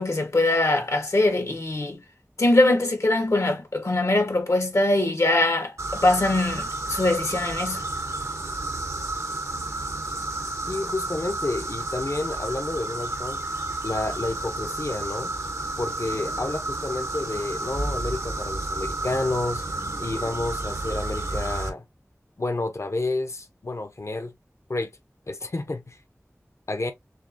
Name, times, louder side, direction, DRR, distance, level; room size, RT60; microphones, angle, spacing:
voice 1, 0.0-2.0 2.4-7.8, left 2 dB, 80° left, 1.2 m, -22 dB
sound 1, 5.8-21.7, right 2 dB, 80° right, 0.9 m, -31 dB
voice 2, 10.7-13.4 13.8-15.3 15.8-19.6 20.0-21.9 22.4-24.3 24.7-24.9 25.3-26.0 26.7-26.9, left 2 dB, 65° left, 0.7 m, -30 dB
6.3 x 2.1 x 2.6 m
wide cardioid pair, 45°, 5 cm